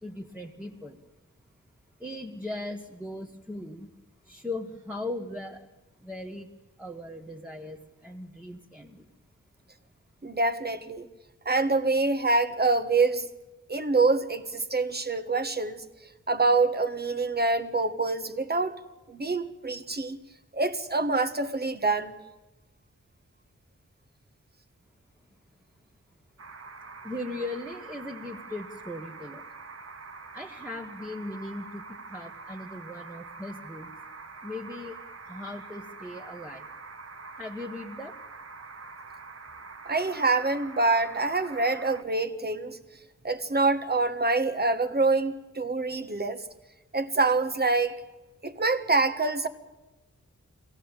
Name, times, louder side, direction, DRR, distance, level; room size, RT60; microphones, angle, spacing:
voice 1, 0.0-1.0 2.0-3.9 4.2-5.7 6.0-6.5 6.8-9.0 27.0-29.4 30.3-33.9 34.4-35.0 35.2-36.7 37.4-38.1, left 2 dB, 5° right, 1.5 m, -38 dB
voice 2, 10.2-11.1 11.4-13.3 13.7-15.8 16.3-18.8 19.1-20.2 20.5-22.1 39.8-42.8 43.2-46.4 46.9-48.0 48.4-49.5, right 3 dB, 35° right, 1.5 m, -26 dB
sound 1, 26.4-42.0, right 4 dB, 55° right, 1.3 m, -45 dB
22.5 x 17.0 x 9.0 m
wide cardioid pair, 140°, 29 cm